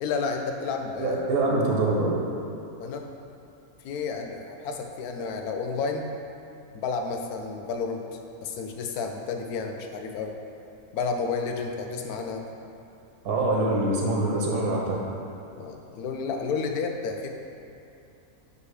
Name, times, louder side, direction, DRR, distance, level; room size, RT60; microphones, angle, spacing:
voice 1, 0.0-1.2 2.8-3.1 3.8-6.1 6.7-10.3 10.9-12.4 15.6-17.3, left 4 dB, 85° left, 4 dB, 1.1 m, -31 dB
voice 2, 1.0-2.1 13.2-15.0, right 2 dB, 85° right, -2 dB, 1.4 m, -24 dB
4.9 x 4.9 x 4.8 m, 2.8 s
omnidirectional pair, 1.5 m